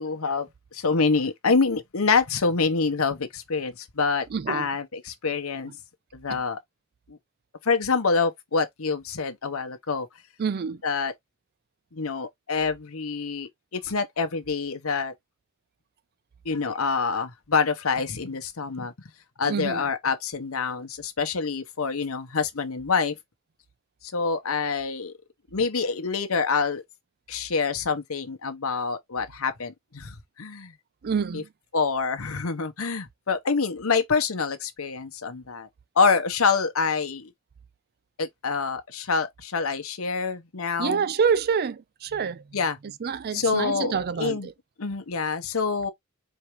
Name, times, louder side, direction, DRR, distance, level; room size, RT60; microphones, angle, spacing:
voice 1, 0.0-5.7 6.1-6.6 7.1-7.2 7.6-10.1 10.8-11.1 11.9-15.1 16.4-18.9 19.4-23.2 24.0-25.1 25.5-26.8 27.3-30.7 31.3-31.4 31.7-35.7 36.0-37.3 38.2-41.1 42.5-42.8 43.3-44.5 44.8-45.9, left 4 dB, 75° left, 0.9 m, -26 dB
voice 2, 4.3-4.7 6.3-6.4 10.4-10.8 19.5-19.8 31.0-31.5 40.8-42.4 43.0-44.5, right 6 dB, 45° right, 0.4 m, -27 dB
4.6 x 3.2 x 3.0 m
head